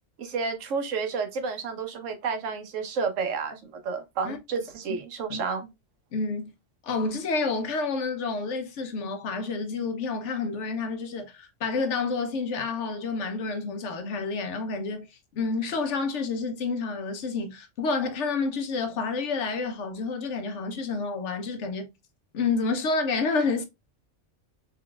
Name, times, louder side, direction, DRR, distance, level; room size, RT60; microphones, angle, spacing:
voice 1, 0.2-5.7, right 5 dB, 80° right, 1.2 m, -31 dB
voice 2, 6.1-6.5 6.8-15.1 15.4-21.9 22.3-23.7, left 4 dB, 70° left, 1.0 m, -29 dB
3.7 x 3.3 x 2.3 m
omnidirectional pair, 1.3 m